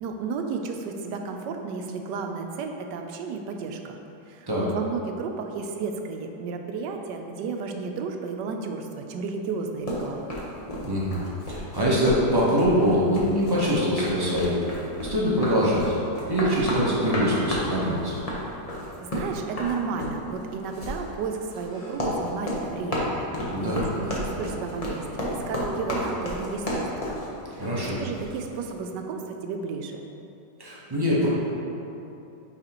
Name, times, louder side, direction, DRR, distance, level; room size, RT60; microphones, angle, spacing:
voice 1, 0.0-4.0 4.3-4.5 4.7-10.3 19.0-23.1 23.4-27.2 27.5-27.7 28.0-30.0, right 5 dB, 75° right, 4 dB, 1.2 m, -33 dB
sound 1, 9.9-28.3, left 1 dB, 30° left, 0.7 m, -32 dB
voice 2, 10.8-11.2 11.5-14.6 15.0-15.9 16.3-18.2 23.5-23.8 27.6-28.0 30.6-31.3, equal, 25° right, -7 dB, 0.5 m, -23 dB
8.9 x 4.1 x 2.9 m, 2.8 s
omnidirectional pair, 1.9 m